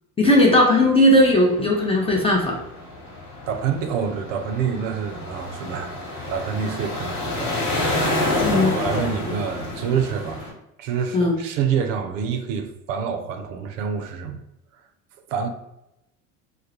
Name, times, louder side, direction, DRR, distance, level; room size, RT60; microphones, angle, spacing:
voice 1, 0.2-2.5 8.4-8.7 11.1-11.4, left 1 dB, 15° left, -1 dB, 0.5 m, -17 dB
sound 1, 1.1-10.5, left 2 dB, 40° left, 1.1 m, -29 dB
voice 2, 3.5-8.3 8.6-10.5 10.8-14.4 15.3-15.5, right 7 dB, 65° right, 6 dB, 0.5 m, -27 dB
2.2 x 2.1 x 2.8 m, 0.86 s
hypercardioid pair, 80°, 41 cm